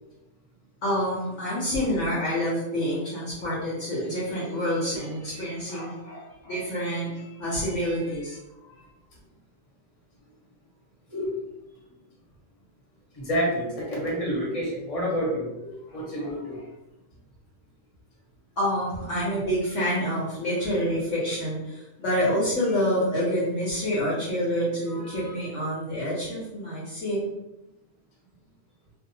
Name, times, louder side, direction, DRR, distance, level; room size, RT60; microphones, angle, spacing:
voice 1, 0.8-8.4 15.9-16.3 18.6-27.2, equal, 60° left, -6 dB, 0.9 m, -27 dB
voice 2, 13.1-16.6 24.9-25.4, equal, 30° left, -5 dB, 0.7 m, -29 dB
2.6 x 2.0 x 2.7 m, 0.96 s
omnidirectional pair, 1.6 m